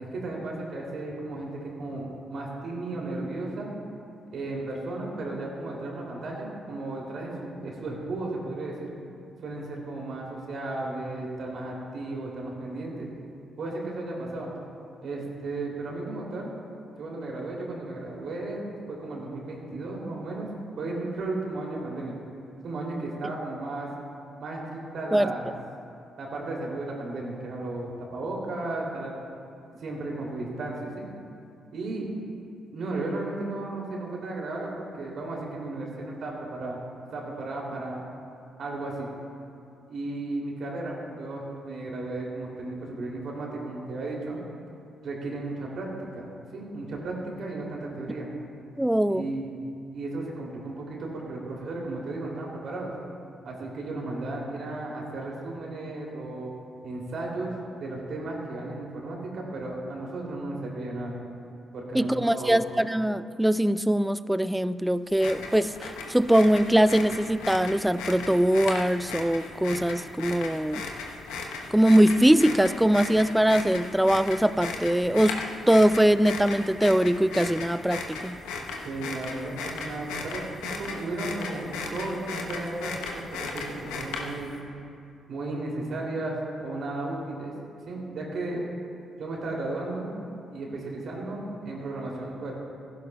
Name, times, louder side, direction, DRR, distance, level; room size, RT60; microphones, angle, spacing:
voice 1, 0.0-3.7 4.3-8.9 9.4-13.1 13.6-14.5 15.0-16.5 17.0-18.6 18.9-20.5 20.8-22.2 22.6-23.9 24.4-25.5 26.2-29.2 29.8-31.1 31.7-32.1 32.7-36.8 37.1-38.0 38.6-39.1 39.9-44.4 45.0-45.9 46.1-48.3 49.1-49.6 49.9-52.9 53.4-56.5 56.8-57.5 57.8-61.1 61.7-62.6 78.8-80.4 80.7-84.5 85.3-87.5 87.9-88.6 89.2-90.1 90.5-92.5, right 2 dB, 60° right, -2 dB, 2.8 m, -34 dB
voice 2, 48.8-49.3 61.9-70.8 71.7-78.4, right 1 dB, 5° right, 15 dB, 0.4 m, -22 dB
sound 1, 65.1-84.6, left 4 dB, 80° left, 1.0 m, -36 dB
15.5 x 11.5 x 2.3 m, 2.5 s
hypercardioid pair, 45°, 0 cm